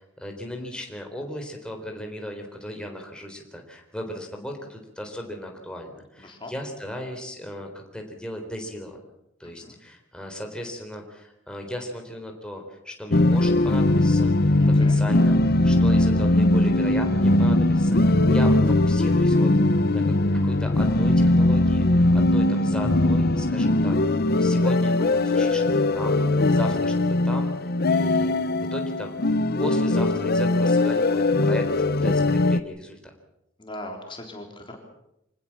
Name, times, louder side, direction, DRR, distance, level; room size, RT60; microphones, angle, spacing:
voice 1, 0.0-9.0 9.4-14.5 14.7-20.1 20.4-27.0 27.2-29.2 29.6-33.1, left 1 dB, 5° left, 2 dB, 4.0 m, -36 dB
voice 2, 6.2-6.5 9.6-9.8 14.6-15.0 26.5-26.7 33.6-34.8, left 1 dB, 25° left, 2 dB, 3.7 m, -40 dB
sound 1, 13.1-32.6, left 2 dB, 55° left, 1.0 m, -20 dB
26.0 x 19.5 x 7.4 m, 0.82 s
head